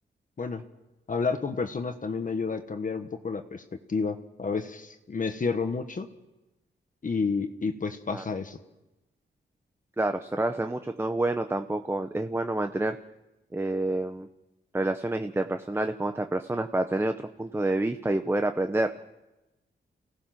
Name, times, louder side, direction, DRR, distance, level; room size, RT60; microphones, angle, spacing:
voice 1, 1.1-3.6 3.9-6.1 7.0-8.6, left 4 dB, 45° left, 6 dB, 1.4 m, -30 dB
voice 2, 10.0-13.0 13.5-14.3 14.7-18.9, right 2 dB, 10° right, 7 dB, 0.9 m, -28 dB
29.5 x 17.5 x 6.0 m, 1.0 s
wide cardioid pair, 120°, 19 cm